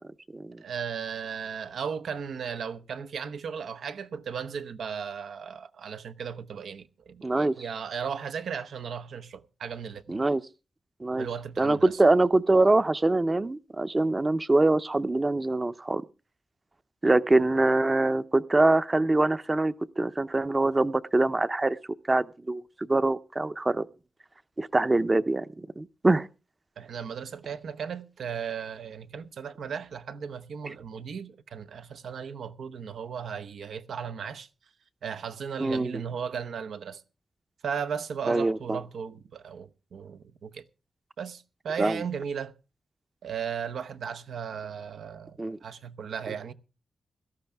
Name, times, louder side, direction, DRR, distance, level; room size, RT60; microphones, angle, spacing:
voice 1, 0.6-10.2 11.2-12.0 26.8-34.5 35.0-37.0 37.6-40.6 41.2-42.5 43.2-46.5, right 7 dB, 85° right, 0.8 m, -36 dB
voice 2, 7.2-7.6 10.1-10.4 11.0-11.3 11.6-16.0 17.0-21.8 22.1-23.9 24.6-26.3 35.6-35.9 38.3-38.8 41.8-42.0 45.4-45.6, right 2 dB, 25° right, 0.6 m, -24 dB
17.0 x 13.0 x 3.5 m
cardioid pair, 80°, 0 cm